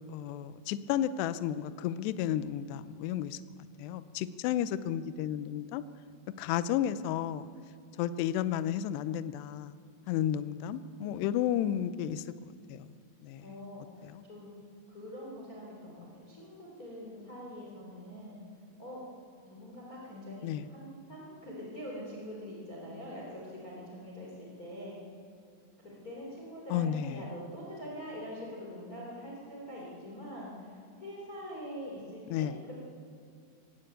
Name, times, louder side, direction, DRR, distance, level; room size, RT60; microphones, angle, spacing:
voice 1, 0.0-3.4 3.8-5.8 6.4-7.5 8.0-9.8 10.1-12.3 12.7-12.9 13.2-13.5 14.0-14.2 20.4-20.7 26.7-27.2 32.3-32.6, left 10 dB, 90° left, 13 dB, 2.4 m, -32 dB
voice 2, 10.9-11.7 13.4-14.5 14.9-18.4 18.8-19.0 19.4-25.0 25.8-32.8, equal, 20° left, -3 dB, 3.7 m, -44 dB
20.0 x 16.0 x 9.0 m, 2.3 s
omnidirectional pair, 5.7 m